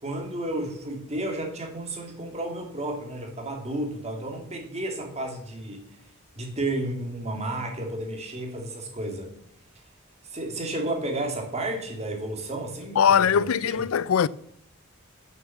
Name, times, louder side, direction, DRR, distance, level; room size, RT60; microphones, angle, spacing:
voice 1, 0.0-5.8 6.4-9.3 10.3-13.8, right 1 dB, 30° right, 2.1 m, -32 dB
voice 2, 13.0-14.3, left 7 dB, 75° left, 0.4 m, -21 dB
7.3 x 6.7 x 7.1 m
head